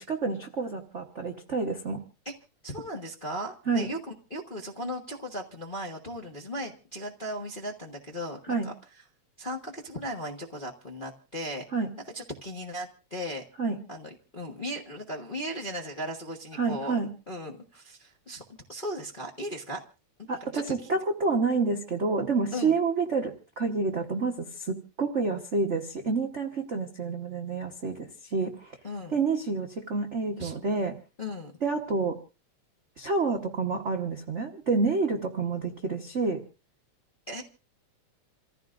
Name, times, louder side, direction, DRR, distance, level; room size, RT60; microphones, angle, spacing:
voice 1, 0.0-2.0 3.7-3.9 8.5-8.7 11.7-11.9 13.6-13.8 16.6-17.1 20.3-28.8 29.1-30.9 31.6-32.2 33.0-36.4, right 4 dB, 85° right, 2 dB, 0.6 m, -28 dB
voice 2, 2.6-8.7 9.4-11.7 12.1-13.5 13.9-16.9 17.3-19.8 20.2-20.3 20.5-20.9 22.5-22.8 28.8-29.2 30.4-30.5 31.2-31.5 37.3-37.4, equal, 45° left, -1 dB, 0.6 m, -37 dB
28.5 x 15.0 x 2.5 m, 0.33 s
omnidirectional pair, 3.3 m